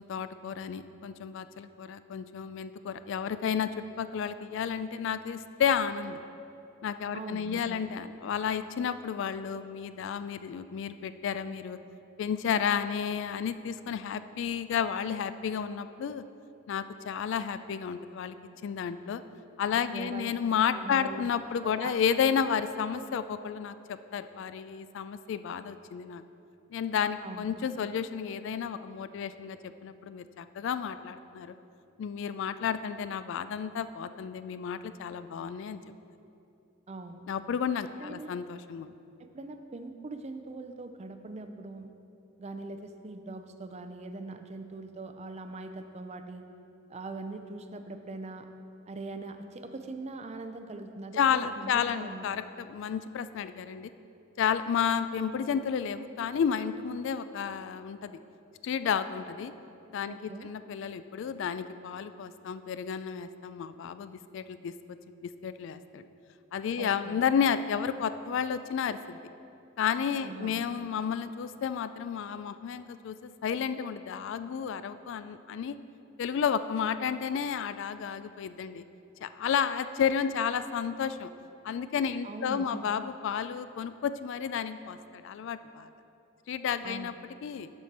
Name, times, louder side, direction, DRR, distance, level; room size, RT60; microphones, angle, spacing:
voice 1, 0.0-6.2 6.8-11.8 12.2-16.2 16.7-18.4 18.6-19.2 19.6-26.2 26.7-31.5 32.0-35.8 37.3-38.9 51.2-53.9 54.4-58.2 58.6-59.5 59.9-60.2 60.4-64.7 65.2-66.1 66.5-69.2 69.8-75.8 76.2-78.8 79.2-81.3 81.6-85.9 86.5-87.1 87.4-87.7, left 7 dB, 60° left, 12 dB, 0.3 m, -32 dB
voice 2, 7.1-7.9 19.9-20.3 20.7-21.3 21.8-21.9 27.2-27.5 36.9-37.2 38.0-38.4 39.2-41.9 42.4-46.4 46.9-48.5 48.9-52.4 60.1-60.5 66.8-67.2 70.2-70.6 82.2-82.9 86.8-87.2, right 2 dB, 30° right, 7 dB, 0.4 m, -42 dB
12.5 x 4.3 x 4.6 m, 2.7 s
head